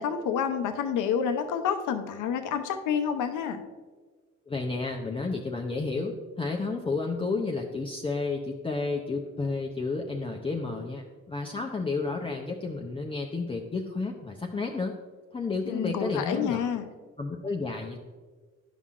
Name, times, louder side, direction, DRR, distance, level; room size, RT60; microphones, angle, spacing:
voice 1, 0.0-3.6 15.7-16.8, left 7 dB, 85° left, 7 dB, 0.7 m, -29 dB
voice 2, 4.5-14.9 15.3-16.7 17.2-18.0, left 3 dB, 20° left, 0 dB, 0.6 m, -31 dB
11.0 x 5.5 x 2.5 m, 1.4 s
cardioid pair, 90°, 30 cm